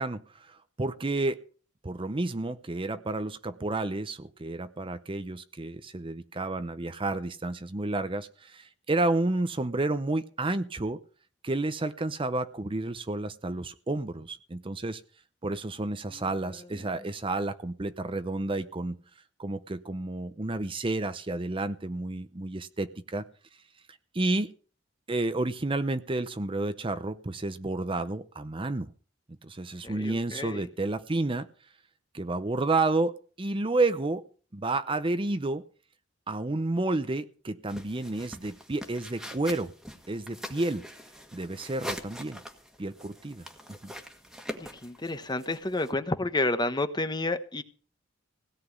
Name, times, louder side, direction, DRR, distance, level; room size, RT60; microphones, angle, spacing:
voice 1, 0.0-1.4 1.8-11.0 11.4-15.0 15.4-19.0 19.4-23.3 24.1-24.5 25.1-28.9 29.4-31.5 32.1-34.3 34.5-35.6 36.3-39.7 40.1-40.9 41.3-42.4 42.8-43.5 43.8-43.9, right 2 dB, 30° right, 0.7 m, -30 dB
voice 2, 16.1-16.9 29.8-30.6 44.6-47.6, left 2 dB, 25° left, 1.1 m, -31 dB
sound 1, 37.7-45.9, equal, ahead, 1.7 m, -43 dB
17.0 x 5.9 x 9.5 m
head